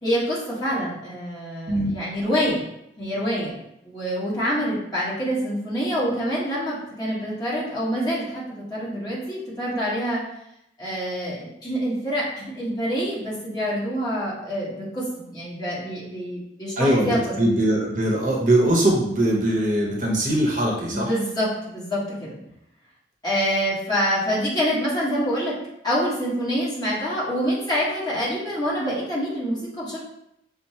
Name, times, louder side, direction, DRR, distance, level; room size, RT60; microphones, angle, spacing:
voice 1, 0.0-2.7 3.0-3.5 3.8-8.4 8.7-10.2 10.8-17.2 20.9-22.4 23.2-25.6 25.8-30.0, equal, 20° left, -7 dB, 1.3 m, -26 dB
voice 2, 16.8-21.1, right 1 dB, 45° right, -2 dB, 0.8 m, -21 dB
5.6 x 2.1 x 4.2 m, 0.82 s
head